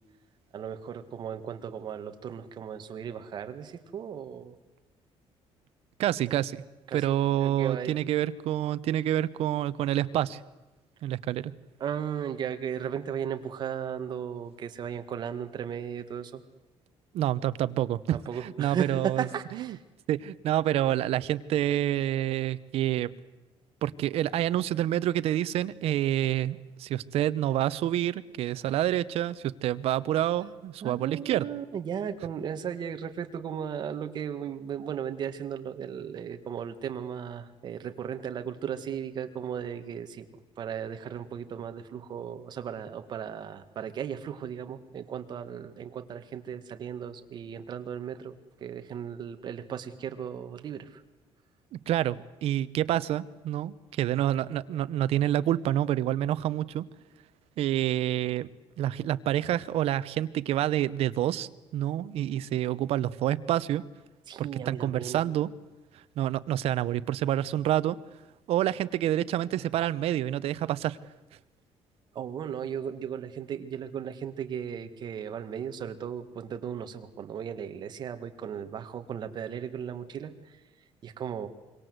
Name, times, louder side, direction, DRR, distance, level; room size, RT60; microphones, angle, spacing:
voice 1, 0.5-4.6 6.9-7.1 7.4-7.9 11.8-16.4 18.1-19.8 30.8-40.3 40.6-51.0 62.3-62.4 64.3-65.2 72.1-80.6 81.0-81.5, right 8 dB, 40° right, 8 dB, 1.8 m, -36 dB
voice 2, 6.0-6.6 6.9-10.4 11.0-11.5 17.1-19.2 19.5-19.7 20.1-23.1 23.8-31.5 51.7-56.8 57.6-58.5 58.8-63.8 64.4-65.5 66.2-68.0 68.5-71.0, right 12 dB, 65° right, 15 dB, 1.0 m, -28 dB
26.0 x 23.5 x 8.0 m, 1.1 s
cardioid pair, 180°, 11 cm